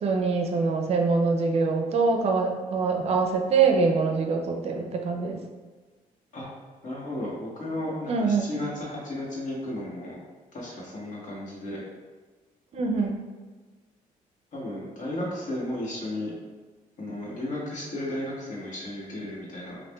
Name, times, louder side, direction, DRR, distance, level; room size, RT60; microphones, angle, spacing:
voice 1, 0.0-5.4 8.1-8.5 12.7-13.2, right 4 dB, 45° right, 3 dB, 0.5 m, -24 dB
voice 2, 6.8-10.2 10.5-11.8 14.5-16.3 17.0-19.8, left 1 dB, 60° left, -5 dB, 1.4 m, -34 dB
5.7 x 2.5 x 2.3 m, 1.4 s
cardioid pair, 155°, 15 cm